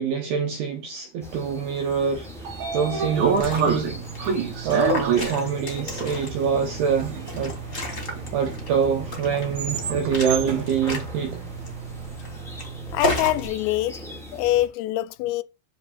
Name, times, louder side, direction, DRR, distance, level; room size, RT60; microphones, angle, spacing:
voice 1, 0.0-2.3 2.7-3.9 4.6-7.5 8.3-11.5, right 6 dB, 75° right, 2.3 m, -25 dB
sound 1, 1.2-14.7, equal, ahead, 0.5 m, -42 dB
Train / Sliding door, 2.0-12.2, right 5 dB, 60° right, 2.2 m, -29 dB
Liquid, 3.1-13.5, equal, 25° left, 1.6 m, -33 dB
voice 2, 12.9-14.0 14.3-15.4, left 15 dB, 85° left, 3.3 m, -24 dB
10.0 x 3.6 x 6.9 m
omnidirectional pair, 6.0 m